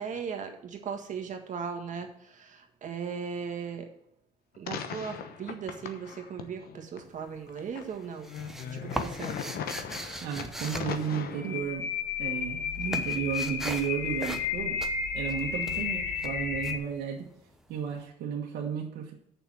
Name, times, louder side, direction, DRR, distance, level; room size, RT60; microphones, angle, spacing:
voice 1, 0.0-3.9 4.6-8.3 8.7-9.5 15.5-16.0, right 6 dB, 50° right, 4 dB, 1.6 m, -38 dB
sound 1, 4.7-7.0 7.5-16.8, left 7 dB, 65° left, 1.1 m, -34 dB
sound 2, 7.0-7.5 7.8-11.9 12.1-17.7, right 1 dB, ahead, 1.0 m, -40 dB
voice 2, 10.2-11.9 12.2-14.8 15.1-17.3 17.7-19.1, right 8 dB, 75° right, -1 dB, 1.3 m, -33 dB
6.9 x 5.8 x 7.4 m, 0.76 s
cardioid pair, 110°, 17 cm